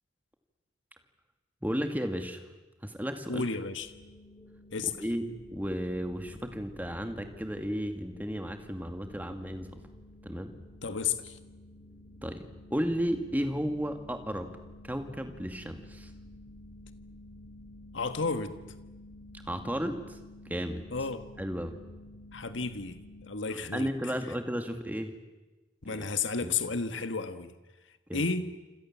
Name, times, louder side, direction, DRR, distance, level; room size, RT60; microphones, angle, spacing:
voice 1, 1.6-2.4 2.8-3.5 5.0-9.8 10.2-10.5 12.2-12.4 12.7-14.5 14.8-16.1 19.5-20.2 20.5-20.8 21.4-21.7 23.5-25.1 25.9-26.1 26.4-26.6 28.1-28.2, equal, 10° right, 6 dB, 2.3 m, -33 dB
voice 2, 3.3-3.9 4.7-4.9 10.8-11.4 17.9-18.6 20.9-21.2 22.3-23.9 25.8-27.5 28.1-28.5, left 4 dB, 75° left, 9 dB, 1.7 m, -32 dB
sound 1, 3.8-23.2, left 1 dB, 10° left, 3.6 m, -51 dB
28.5 x 26.5 x 7.5 m, 1.2 s
head